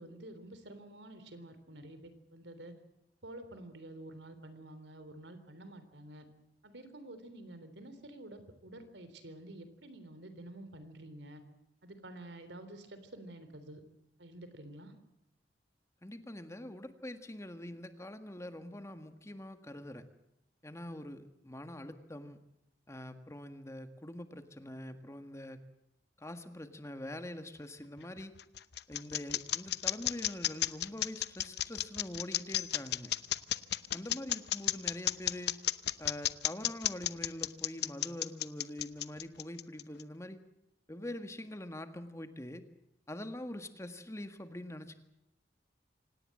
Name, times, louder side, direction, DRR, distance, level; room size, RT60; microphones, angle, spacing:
voice 1, 0.0-2.7 3.2-6.3 6.6-11.4 11.8-13.8 14.2-14.9, right 1 dB, 80° right, 10 dB, 3.6 m, -49 dB
voice 2, 16.0-20.0 20.6-22.4 22.9-25.6 26.2-28.3 28.9-33.1 33.9-35.5 36.0-40.4 40.9-42.6 43.1-44.9, left 1 dB, 15° left, 8 dB, 1.7 m, -44 dB
sound 1, 28.0-40.0, left 12 dB, 65° left, 0.8 m, -33 dB
26.0 x 18.0 x 7.8 m, 0.85 s
head